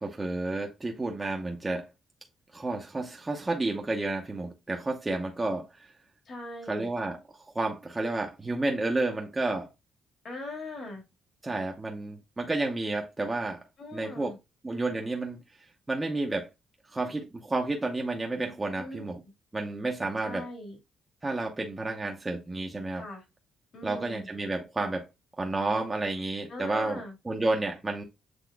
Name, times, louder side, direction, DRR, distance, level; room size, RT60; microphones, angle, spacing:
voice 1, 0.0-1.9 2.5-5.7 6.7-9.7 11.4-13.6 13.9-14.3 14.6-15.4 15.9-16.5 16.9-19.2 19.5-20.5 21.2-23.0 23.8-25.1 25.4-28.0, right 2 dB, 20° right, 0.8 m, -31 dB
voice 2, 6.3-6.9 10.2-11.0 13.8-14.4 18.8-19.1 20.2-20.8 22.9-23.2 23.7-24.3 26.5-27.2, left 2 dB, 55° left, 1.8 m, -40 dB
7.7 x 3.0 x 2.3 m
cardioid pair, 90°, 0 cm